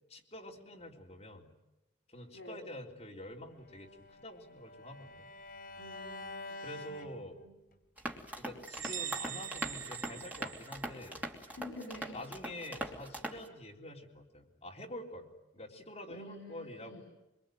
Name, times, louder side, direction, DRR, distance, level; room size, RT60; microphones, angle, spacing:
voice 1, 0.1-1.5 2.1-5.3 6.6-7.5 8.4-11.2 12.1-17.0, left 1 dB, 35° left, 0 dB, 3.6 m, -47 dB
Bowed string instrument, 3.6-7.8, left 2 dB, 50° left, 4.3 m, -48 dB
voice 2, 5.8-6.3 11.5-12.2 16.1-17.0, left 1 dB, 80° left, 4 dB, 5.3 m, -47 dB
sound 1, 8.0-13.5, right 1 dB, 10° right, 2.9 m, -41 dB
sound 2, 8.7-11.3, right 9 dB, 90° right, 1.0 m, -42 dB
25.0 x 24.5 x 9.2 m, 0.94 s
head